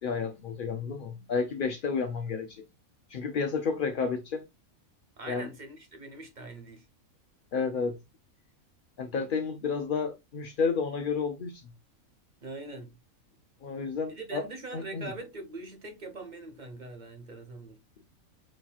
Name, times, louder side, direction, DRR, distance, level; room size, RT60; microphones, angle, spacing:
voice 1, 0.0-2.6 3.1-4.4 5.3-5.5 7.5-8.0 9.0-11.6 13.6-14.4 14.7-15.1, left 5 dB, 80° left, 0.4 m, -31 dB
voice 2, 5.2-6.9 12.4-12.9 14.1-17.8, right 2 dB, 35° right, 1.0 m, -42 dB
6.4 x 2.9 x 2.3 m
omnidirectional pair, 1.5 m